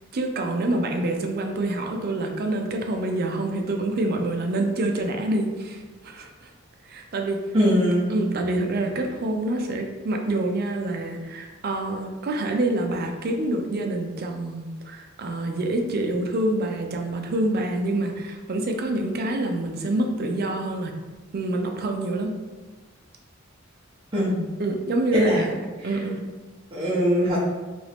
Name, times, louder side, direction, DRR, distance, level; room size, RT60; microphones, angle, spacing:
voice 1, 0.1-6.5 6.9-7.5 8.1-20.9 21.3-22.3 24.6-26.2, right 1 dB, 50° right, 3 dB, 0.4 m, -27 dB
voice 2, 7.5-8.1 24.1-24.4 25.1-25.4 26.7-27.4, equal, 25° right, -11 dB, 0.7 m, -21 dB
2.8 x 2.6 x 3.4 m, 1.2 s
head